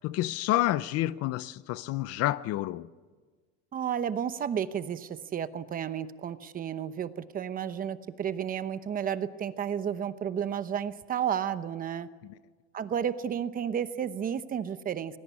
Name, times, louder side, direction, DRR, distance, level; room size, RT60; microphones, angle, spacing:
voice 1, 0.0-2.9 12.2-12.3, left 15 dB, 45° left, 0.7 m, -29 dB
voice 2, 3.7-12.1 12.7-15.2, right 8 dB, 25° right, 0.9 m, -32 dB
27.0 x 20.5 x 8.4 m
cardioid pair, 150°, 33 cm